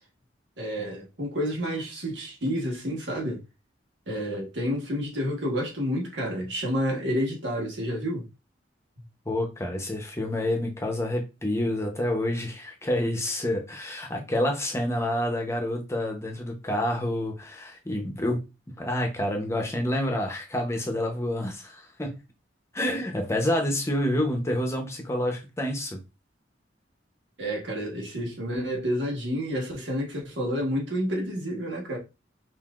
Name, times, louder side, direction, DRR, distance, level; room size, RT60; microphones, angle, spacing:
voice 1, 0.6-3.4 4.1-8.3 27.4-32.0, equal, 80° right, 1.4 m, -29 dB
voice 2, 9.3-18.4 18.8-22.2 22.7-26.0, left 1 dB, 15° left, 0.8 m, -28 dB
5.6 x 2.6 x 2.4 m
head